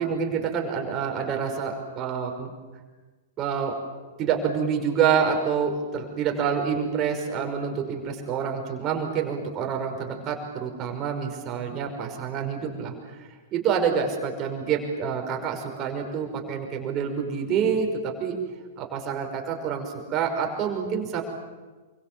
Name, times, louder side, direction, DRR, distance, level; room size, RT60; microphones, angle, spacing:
voice 1, 0.0-2.5 3.4-3.8 4.2-12.9 13.5-18.4 18.8-21.2, right 7 dB, 30° right, 3 dB, 5.4 m, -27 dB
28.0 x 24.5 x 7.5 m, 1.3 s
figure-of-eight pair, 100°, 0 cm